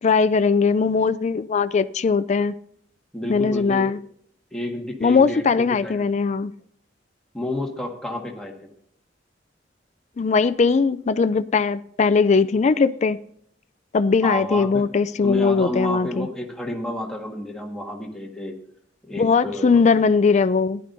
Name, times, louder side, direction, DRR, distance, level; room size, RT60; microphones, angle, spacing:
voice 1, 0.0-2.5 3.3-4.0 5.0-6.5 10.2-13.2 13.9-16.3 19.2-20.8, left 5 dB, 40° left, 0.4 m, -20 dB
voice 2, 3.1-3.9 4.5-6.0 7.3-8.5 14.2-14.9 15.2-18.6 19.0-19.8, left 1 dB, 5° left, 1.7 m, -30 dB
15.5 x 10.5 x 2.6 m
head